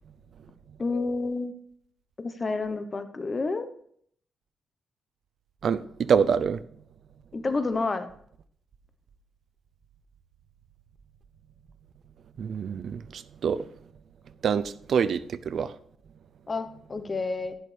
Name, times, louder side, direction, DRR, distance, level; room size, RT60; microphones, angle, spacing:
voice 1, 0.8-1.5 2.2-3.7 7.3-8.1 16.5-17.5, left 3 dB, 30° left, 1.0 m, -29 dB
voice 2, 5.6-6.6 12.4-13.6 14.4-14.6 14.9-15.7, right 7 dB, 60° right, 0.5 m, -26 dB
11.0 x 10.5 x 3.4 m
cardioid pair, 105°, 0 cm